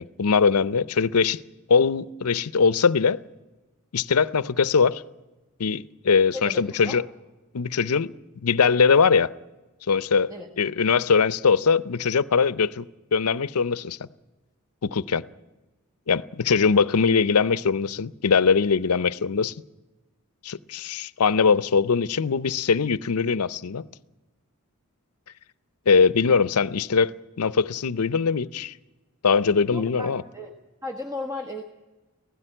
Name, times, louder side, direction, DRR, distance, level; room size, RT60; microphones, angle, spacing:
voice 1, 0.0-1.4 1.7-3.2 3.9-5.0 5.6-7.0 7.5-8.1 8.4-9.3 9.9-12.9 13.1-14.1 14.8-15.2 16.1-19.5 20.4-23.9 25.9-27.1 27.4-28.7 29.2-30.2, left 5 dB, 80° left, 0.6 m, -21 dB
voice 2, 6.3-7.0 10.3-10.5 29.7-30.5 30.8-31.6, left 2 dB, 15° right, 1.3 m, -35 dB
17.0 x 16.0 x 10.0 m
head